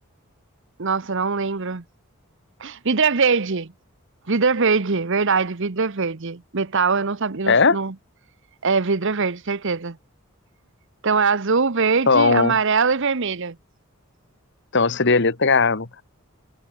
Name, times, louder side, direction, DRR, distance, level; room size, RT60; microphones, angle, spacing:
voice 1, 0.8-1.8 2.6-3.7 4.3-7.9 8.6-10.0 11.0-13.6, right 5 dB, 60° right, 1.0 m, -22 dB
voice 2, 7.5-7.8 12.1-12.6 14.7-16.0, left 4 dB, 55° left, 1.6 m, -18 dB
head